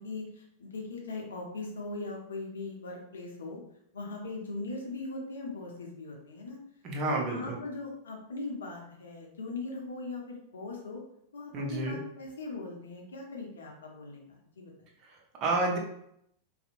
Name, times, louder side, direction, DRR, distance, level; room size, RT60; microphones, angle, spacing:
voice 1, 0.0-3.6 3.9-6.6 7.1-11.0 11.3-14.7, left 3 dB, 65° left, 0 dB, 0.6 m, -40 dB
voice 2, 6.8-7.6 11.5-12.0 15.0-15.8, right 2 dB, 35° right, 0 dB, 0.6 m, -30 dB
2.7 x 2.1 x 2.5 m, 0.74 s
figure-of-eight pair, 90°, 0 cm